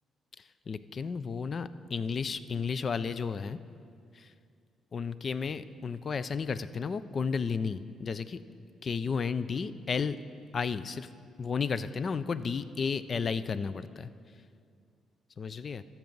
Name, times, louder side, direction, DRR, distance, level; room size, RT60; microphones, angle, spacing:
voice 1, 0.4-3.6 4.1-4.3 4.9-8.4 8.8-10.2 10.5-11.1 11.4-14.1 15.4-15.8, left 5 dB, 45° left, 15 dB, 0.4 m, -33 dB
14.0 x 6.0 x 5.3 m, 2.3 s
cardioid pair, 90°, 0 cm